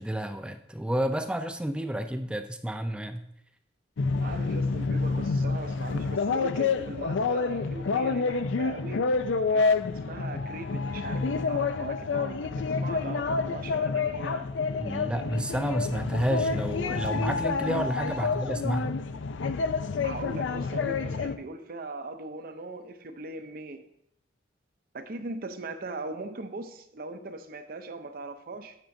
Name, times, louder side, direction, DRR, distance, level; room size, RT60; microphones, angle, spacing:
voice 1, 0.0-3.2 14.8-18.9, right 1 dB, 5° right, 0.3 m, -30 dB
sound 1, 4.0-21.4, left 4 dB, 85° left, 0.5 m, -28 dB
voice 2, 4.2-9.0 9.5-9.7 9.9-14.5 18.2-18.4 20.0-23.9 24.9-28.8, right 2 dB, 50° right, 0.6 m, -40 dB
10.5 x 7.5 x 2.7 m
head